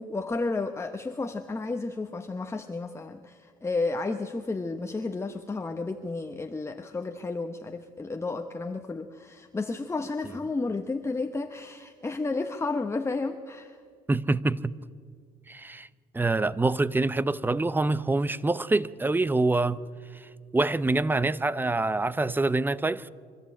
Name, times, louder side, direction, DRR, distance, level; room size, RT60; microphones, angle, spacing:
voice 1, 0.0-13.8, left 3 dB, 15° left, 1.0 m, -32 dB
voice 2, 14.1-14.7 15.5-15.9 16.1-19.8 20.2-23.1, right 2 dB, 10° right, 0.7 m, -26 dB
25.0 x 14.0 x 8.6 m
supercardioid pair, 85°, 16 cm